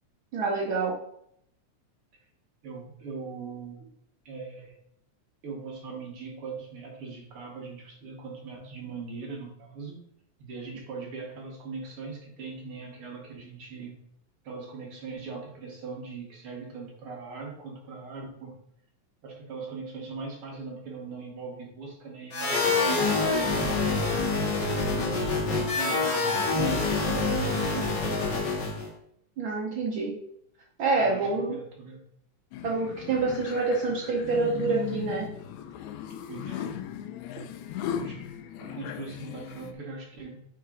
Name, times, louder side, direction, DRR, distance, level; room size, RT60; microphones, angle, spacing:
voice 1, 0.3-0.9 29.4-30.1 30.8-31.5 32.6-35.3, right 3 dB, 80° right, -2 dB, 1.1 m, -27 dB
voice 2, 2.6-3.8 4.3-4.8 5.4-10.0 10.4-14.0 14.4-18.6 19.2-22.7 23.2-24.2 24.7-28.4 31.0-32.0 36.3-36.7 37.8-38.3 38.6-40.4, right 4 dB, 60° right, 0 dB, 1.7 m, -40 dB
sound 1, 22.3-28.9, left 3 dB, 45° left, 1.8 m, -26 dB
sound 2, 32.5-39.7, left 9 dB, 80° left, 1.8 m, -37 dB
4.9 x 4.8 x 4.8 m, 0.72 s
omnidirectional pair, 3.4 m